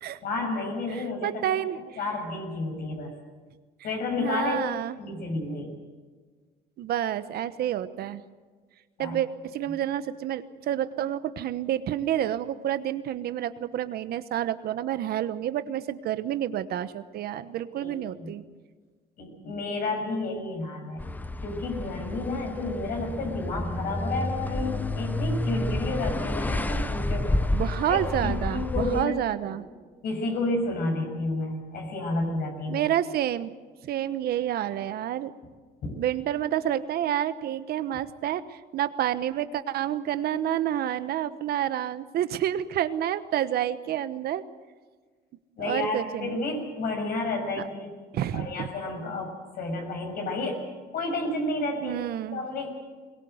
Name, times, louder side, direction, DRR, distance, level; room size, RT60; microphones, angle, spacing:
voice 1, 0.2-1.4 1.7-3.1 3.8-4.6 5.0-5.8 9.0-9.2 17.8-18.3 19.2-21.0 21.4-29.2 29.4-29.5 30.0-32.8 35.8-36.0 45.6-50.7 50.9-52.0 52.3-52.7, left 2 dB, 65° left, 3 dB, 6.5 m, -31 dB
voice 2, 0.9-1.8 4.2-5.0 6.8-8.2 9.0-18.4 27.5-29.7 32.7-33.5 33.8-35.3 36.0-44.4 45.6-46.4 48.1-48.7 51.8-52.4, right 11 dB, 65° right, 13 dB, 1.1 m, -29 dB
sound 1, 21.0-29.1, left 1 dB, 10° left, 0.7 m, -30 dB
21.5 x 18.5 x 8.0 m, 1.5 s
cardioid pair, 110°, 17 cm